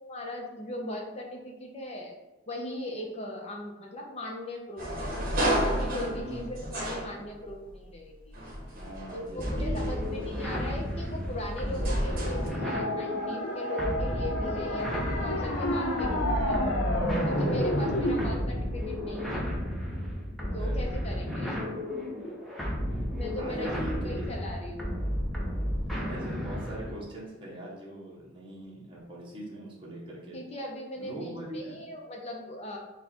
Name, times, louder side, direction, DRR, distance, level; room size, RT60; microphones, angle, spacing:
voice 1, 0.0-2.1 2.5-5.1 5.6-8.3 9.1-16.8 17.3-19.4 20.5-21.6 22.0-22.2 23.2-24.9 30.3-32.8, left 1 dB, 30° left, 0 dB, 0.8 m, -39 dB
sound 1, 4.8-7.7 8.3-12.5, right 1 dB, 45° right, 1.0 m, -33 dB
voice 2, 6.1-6.8 8.7-10.7 14.8-15.0 17.6-18.4 20.6-21.4 23.4-24.3 26.1-30.5 31.0-31.8, right 1 dB, 25° right, -5 dB, 1.0 m, -41 dB
sound 2, 9.4-27.0, equal, ahead, 0.8 m, -33 dB
sound 3, 11.8-18.3, left 1 dB, 90° left, 0.9 m, -30 dB
4.6 x 2.4 x 4.2 m, 1.0 s
head